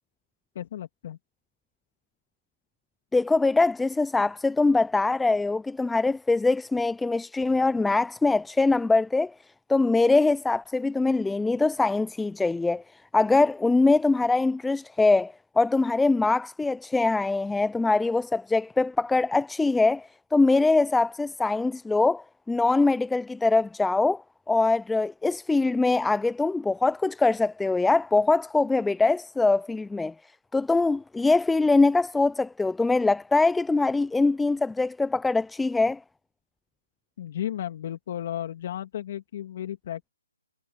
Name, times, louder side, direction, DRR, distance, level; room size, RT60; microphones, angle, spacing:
voice 1, 0.5-1.2 37.2-40.1, left 11 dB, 40° left, 3.0 m, -34 dB
voice 2, 3.1-9.3 9.7-12.8 13.1-30.1 30.5-36.0, left 3 dB, 5° left, 0.4 m, -23 dB
hypercardioid pair, 155°, 0 cm